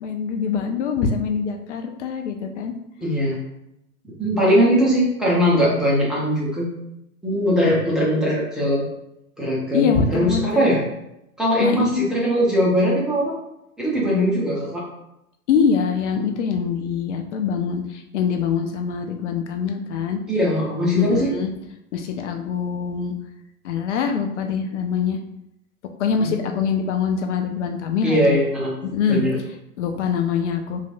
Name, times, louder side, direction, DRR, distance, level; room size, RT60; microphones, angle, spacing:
voice 1, 0.0-2.7 9.7-10.7 11.6-12.2 15.5-20.2 21.0-21.5 21.9-23.1 23.6-25.2 26.0-28.4 28.8-29.2 29.8-30.8, left 6 dB, 50° left, 4 dB, 0.5 m, -24 dB
voice 2, 3.0-3.4 4.2-6.7 7.2-8.8 9.4-10.8 11.4-13.4 13.8-14.8 20.3-21.3 26.2-26.3 28.0-28.7 29.1-29.4, equal, ahead, -6 dB, 0.7 m, -20 dB
3.0 x 2.6 x 2.5 m, 0.84 s
figure-of-eight pair, 100°, 46 cm